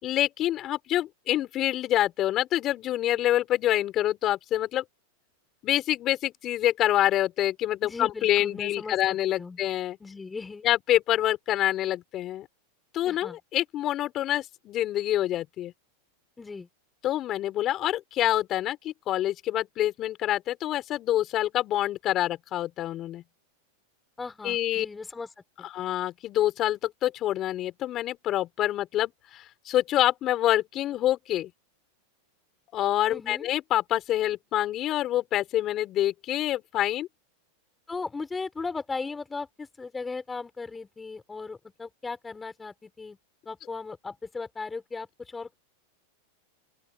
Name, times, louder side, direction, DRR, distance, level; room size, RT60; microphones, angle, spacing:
voice 1, 0.0-4.8 5.6-10.0 10.6-12.5 12.9-15.7 17.0-23.2 24.4-24.9 25.7-31.5 32.7-37.1, left 13 dB, 40° left, 5.6 m, -26 dB
voice 2, 7.8-9.6 10.0-10.6 13.1-13.4 16.4-16.7 24.2-25.7 33.1-33.5 37.9-43.2 43.5-45.5, left 4 dB, 15° left, 6.1 m, -37 dB
open air
hypercardioid pair, 115°, 0 cm